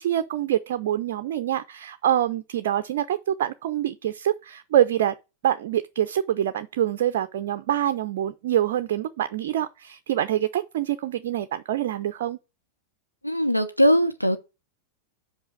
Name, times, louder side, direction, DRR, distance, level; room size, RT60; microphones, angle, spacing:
voice 1, 0.0-5.1 5.4-12.4, right 11 dB, 55° right, 0.4 m, -25 dB
voice 2, 13.2-14.4, equal, 90° left, 0.8 m, -20 dB
5.5 x 5.3 x 6.2 m
figure-of-eight pair, 90°, 0 cm